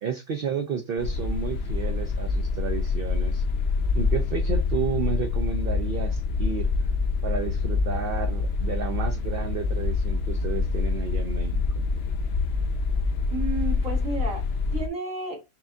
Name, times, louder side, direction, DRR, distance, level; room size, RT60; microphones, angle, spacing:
voice 1, 0.0-3.4 3.9-6.7 7.2-11.8, right 6 dB, 55° right, 0.7 m, -32 dB
sound 1, 1.0-14.9, left 4 dB, 60° left, 0.7 m, -26 dB
voice 2, 13.3-15.4, right 2 dB, 80° right, 2.5 m, -32 dB
5.7 x 2.7 x 2.3 m
omnidirectional pair, 1.4 m